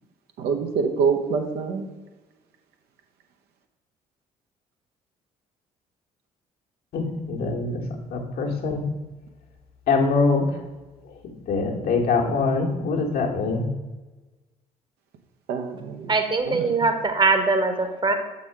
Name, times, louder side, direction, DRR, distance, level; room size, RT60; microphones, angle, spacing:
voice 1, 0.4-1.9 15.5-16.1 16.5-16.9, right 5 dB, 60° right, 5 dB, 0.8 m, -26 dB
voice 2, 6.9-7.8 8.1-8.8 9.9-10.5 11.5-13.7, left 4 dB, 55° left, 1 dB, 1.2 m, -23 dB
voice 3, 16.1-18.1, right 3 dB, 25° right, 6 dB, 1.1 m, -22 dB
7.2 x 4.0 x 4.5 m, 1.2 s
figure-of-eight pair, 45°, 19 cm